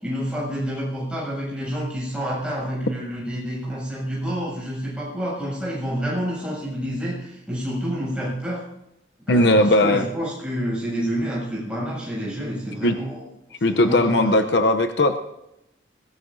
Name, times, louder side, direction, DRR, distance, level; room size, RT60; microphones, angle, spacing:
voice 1, 0.0-8.6 9.3-13.2 13.6-14.3, equal, 5° right, -5 dB, 7.3 m, -28 dB
voice 2, 9.3-10.0 12.8-13.0 13.6-15.2, left 1 dB, 65° left, 7 dB, 0.7 m, -18 dB
21.5 x 18.0 x 2.7 m, 0.88 s
head